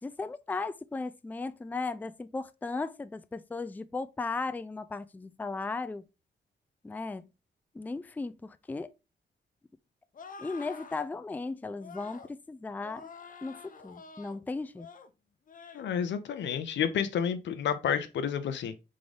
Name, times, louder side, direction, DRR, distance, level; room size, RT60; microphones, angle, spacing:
voice 1, 0.0-6.1 6.8-7.3 7.7-8.9 10.4-13.1 13.4-14.9, left 3 dB, 10° left, 0.3 m, -36 dB
sound 1, 10.1-11.1 11.8-12.3 12.8-14.4 14.8-15.1 15.5-15.9 16.3-16.6, left 5 dB, 50° left, 0.7 m, -48 dB
voice 2, 15.7-18.7, left 8 dB, 90° left, 0.6 m, -30 dB
3.7 x 3.7 x 3.3 m
cardioid pair, 90°, 18 cm